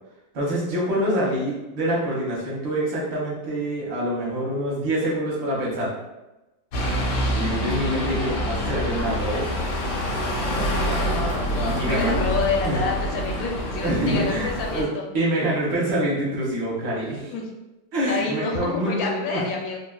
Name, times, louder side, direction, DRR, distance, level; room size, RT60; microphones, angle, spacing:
voice 1, 0.3-5.9 7.3-9.5 11.5-12.2 12.6-12.8 13.3-13.5 13.8-14.9 15.1-17.3 17.9-19.4, right 1 dB, 55° right, -5 dB, 1.2 m, -26 dB
sound 1, 6.7-14.8, equal, 90° left, 1.5 m, -26 dB
voice 2, 11.6-15.0 17.3-17.5 18.1-19.8, left 4 dB, 70° left, 0 dB, 0.9 m, -28 dB
3.4 x 2.3 x 2.3 m, 1.0 s
omnidirectional pair, 2.0 m